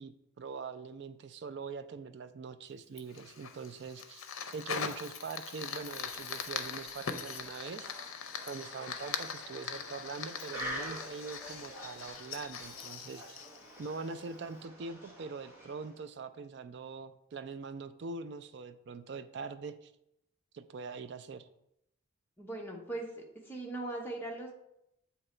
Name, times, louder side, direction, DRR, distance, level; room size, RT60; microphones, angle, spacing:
voice 1, 0.0-7.9 8.5-13.4 13.8-19.9 20.5-21.5, right 4 dB, 55° right, 11 dB, 0.3 m, -43 dB
Fire, 3.0-14.3, left 6 dB, 80° left, 0.5 m, -41 dB
sound 1, 5.7-16.1, equal, 10° right, 1.0 m, -47 dB
voice 2, 22.4-24.5, right 2 dB, 10° left, -1 dB, 0.8 m, -40 dB
7.7 x 2.9 x 4.3 m, 0.80 s
head